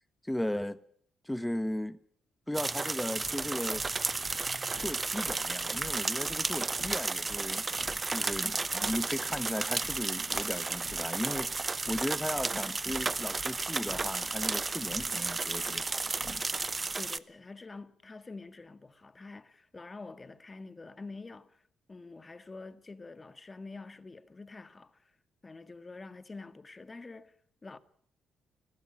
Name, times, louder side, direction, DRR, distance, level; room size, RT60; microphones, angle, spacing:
voice 1, 0.2-0.8 1.2-2.0 2.5-3.8 4.8-7.7 8.1-16.5, left 1 dB, 5° left, 1.4 m, -36 dB
sound 1, 2.5-17.2, right 3 dB, 30° right, 0.9 m, -33 dB
sound 2, 3.2-16.8, left 6 dB, 60° left, 1.9 m, -52 dB
voice 2, 16.9-21.6 21.9-25.1 25.4-27.3 27.6-27.8, left 3 dB, 30° left, 1.7 m, -47 dB
21.0 x 15.0 x 9.9 m
cardioid pair, 75°, 0 cm